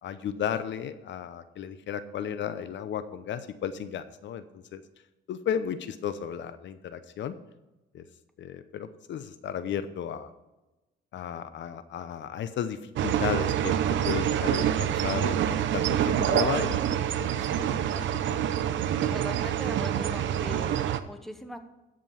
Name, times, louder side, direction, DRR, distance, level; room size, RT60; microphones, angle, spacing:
voice 1, 0.0-4.8 5.3-7.3 7.9-8.1 8.4-10.3 11.1-18.4, left 8 dB, 70° left, 11 dB, 0.7 m, -34 dB
sound 1, 13.0-21.0, right 10 dB, 75° right, 0.7 m, -26 dB
voice 2, 19.1-20.7 21.1-21.6, equal, ahead, 7 dB, 1.1 m, -40 dB
13.5 x 5.3 x 5.6 m, 1.0 s
cardioid pair, 90°, 20 cm